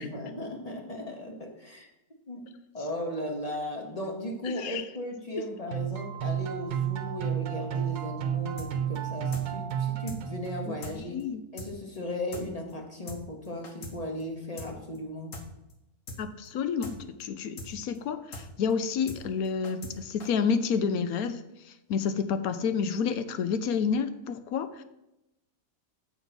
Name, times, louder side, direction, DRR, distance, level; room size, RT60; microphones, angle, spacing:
voice 1, 0.0-1.9 2.3-2.5 2.7-11.2 11.5-15.4, left 1 dB, 30° left, 2 dB, 0.9 m, -36 dB
voice 2, 4.4-4.8 10.7-10.8 11.1-11.4 16.2-24.8, left 6 dB, 75° left, 11 dB, 1.0 m, -30 dB
sound 1, 5.7-10.9, right 9 dB, 85° right, 1.3 m, -32 dB
sound 2, 8.6-8.7 8.9-9.0 9.3-9.4 9.7-9.8 10.1-10.2 10.4-10.5 10.8-10.9 11.2-11.3 11.6-11.7 11.9-12.0 12.3-12.4 12.7-12.8 13.1-13.2 13.4-13.9 14.2-14.3 14.6-14.7 14.9-15.0 15.3-15.4 15.7-15.8 16.1-16.2 16.4-16.5 16.8-16.9 17.2-17.3 17.6-17.7 17.9-18.0 18.3-18.4 18.7-18.8 19.1-19.2 19.4-19.9 20.2-20.3, left 2 dB, 60° left, 1.5 m, -41 dB
7.1 x 5.3 x 6.0 m, 0.91 s
omnidirectional pair, 1.6 m